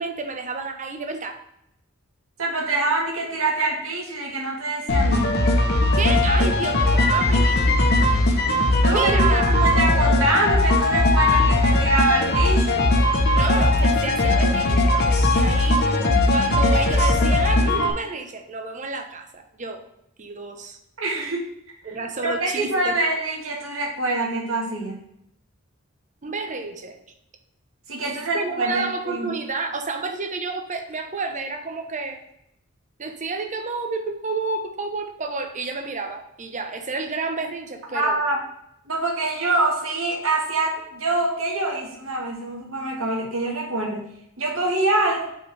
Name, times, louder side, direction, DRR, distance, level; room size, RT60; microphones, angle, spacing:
voice 1, 0.0-1.4 5.9-7.6 8.9-9.8 13.3-15.8 16.3-19.8 20.2-20.8 21.8-22.9 26.2-27.0 28.0-32.2 33.0-38.2, right 3 dB, 35° right, 5 dB, 0.8 m, -30 dB
voice 2, 2.4-5.3 8.8-12.9 21.0-21.5 21.8-21.9 22.2-25.0 27.9-29.3 37.9-38.4 38.9-45.3, right 2 dB, 80° right, -1 dB, 1.6 m, -25 dB
sound 1, 4.9-17.9, left 2 dB, 50° left, 0.9 m, -19 dB
8.1 x 4.3 x 3.4 m, 0.78 s
head